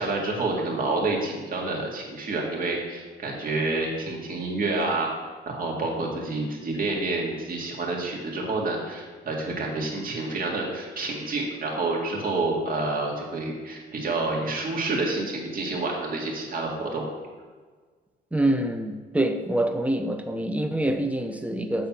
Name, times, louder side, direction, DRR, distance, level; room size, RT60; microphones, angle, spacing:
voice 1, 0.0-5.1 5.5-17.1, right 2 dB, 45° right, 1.9 m, -28 dB
voice 2, 18.3-21.9, right 1 dB, 5° right, 0.7 m, -26 dB
7.1 x 4.0 x 5.9 m
cardioid pair, 90°, 20 cm